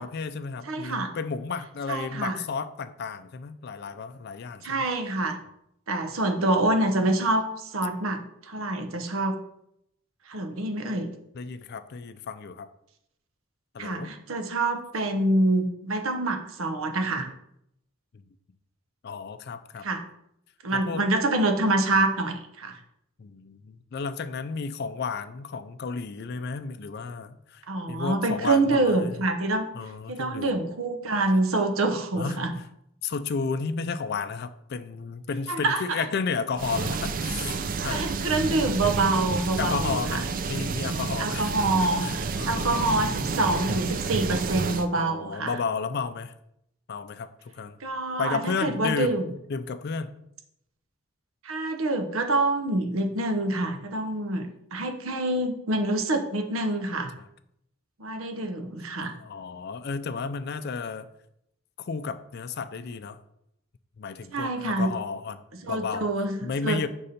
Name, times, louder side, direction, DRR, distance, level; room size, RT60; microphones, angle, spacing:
voice 1, 0.0-4.9 11.3-12.7 13.7-14.1 19.0-19.9 20.7-21.0 23.2-29.2 29.7-30.5 32.2-32.4 33.0-38.0 39.6-41.5 41.8-43.0 44.9-46.3 46.9-47.8 48.2-49.2 49.5-50.1 59.0-61.1 61.8-63.2 64.0-65.4 65.7-66.1 66.4-66.9, left 5 dB, 50° left, 11 dB, 0.4 m, -32 dB
voice 2, 0.6-1.1 1.9-2.4 4.6-5.4 5.9-9.4 10.3-11.1 13.8-17.3 19.8-20.0 20.6-22.8 27.7-29.7 30.1-32.5 35.5-36.1 37.9-40.2 41.2-45.5 47.8-49.3 51.4-57.1 58.0-59.1 64.3-64.9 65.6-66.8, right 2 dB, 80° right, 6 dB, 0.8 m, -26 dB
sound 1, 36.6-44.9, right 4 dB, 40° right, 0.4 m, -30 dB
5.3 x 4.2 x 5.1 m, 0.78 s
head